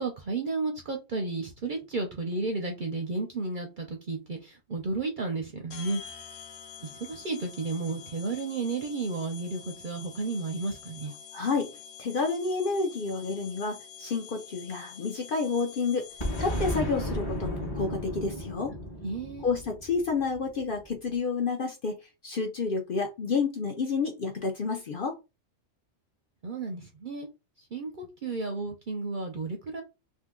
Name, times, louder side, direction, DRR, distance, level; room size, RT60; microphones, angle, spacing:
voice 1, 0.0-6.0 6.8-11.1 19.0-19.5 26.4-27.3 27.7-29.8, right 3 dB, 50° right, 0.6 m, -33 dB
sound 1, 5.7-17.1, left 7 dB, 70° left, 1.0 m, -47 dB
voice 2, 11.3-11.7 12.0-16.1 16.4-18.7 19.4-22.0 22.2-25.2, left 4 dB, 55° left, 0.7 m, -29 dB
Boom, 16.2-20.9, equal, 20° left, 0.8 m, -34 dB
2.7 x 2.5 x 3.6 m
omnidirectional pair, 1.4 m